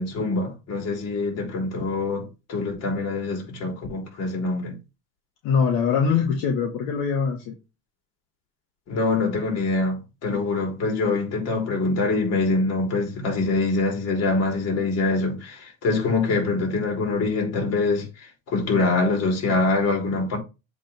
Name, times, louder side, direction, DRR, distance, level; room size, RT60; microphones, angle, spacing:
voice 1, 0.0-4.7 8.9-20.4, left 3 dB, 50° left, 4.0 m, -24 dB
voice 2, 5.4-7.5, left 6 dB, 75° left, 1.7 m, -22 dB
7.6 x 3.6 x 4.5 m
supercardioid pair, 105°, 31 cm